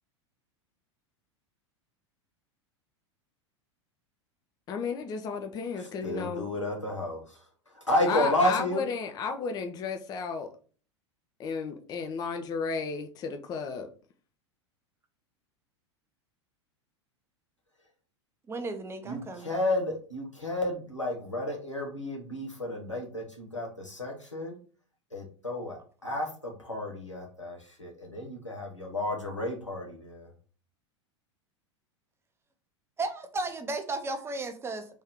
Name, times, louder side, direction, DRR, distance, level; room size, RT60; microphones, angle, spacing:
voice 1, 4.7-6.5 8.0-10.5 11.4-13.9, left 5 dB, 25° left, 6 dB, 0.5 m, -33 dB
voice 2, 6.0-7.2 7.9-8.8 19.1-24.5 25.1-30.3, left 1 dB, 90° left, 0 dB, 1.1 m, -31 dB
voice 3, 18.5-19.5 33.0-35.0, right 2 dB, 15° right, 7 dB, 0.6 m, -34 dB
3.4 x 2.6 x 3.6 m, 0.40 s
figure-of-eight pair, 85°, 15 cm